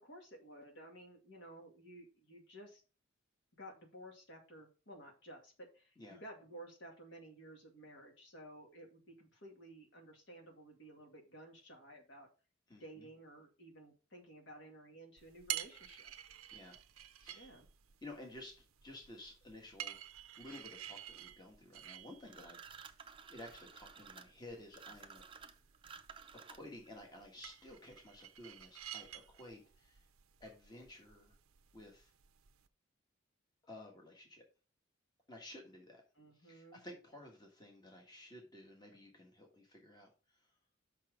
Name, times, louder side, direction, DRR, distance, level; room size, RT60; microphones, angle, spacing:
voice 1, 0.0-2.8 3.6-12.3 12.8-16.1 17.3-17.6 36.2-36.8, right 1 dB, 55° left, 2 dB, 2.2 m, -54 dB
voice 2, 12.7-13.1 16.5-16.8 17.2-17.5 18.0-20.0 20.4-25.2 26.3-30.0 30.4-31.3 31.7-32.1 33.6-34.4 35.3-36.0 36.3-40.4, left 1 dB, 20° left, 1 dB, 1.5 m, -54 dB
sound 1, 15.2-32.7, right 12 dB, 90° right, 0.6 m, -51 dB
sound 2, 22.3-26.9, right 6 dB, 25° right, 0.6 m, -54 dB
5.9 x 5.9 x 5.0 m, 0.34 s
head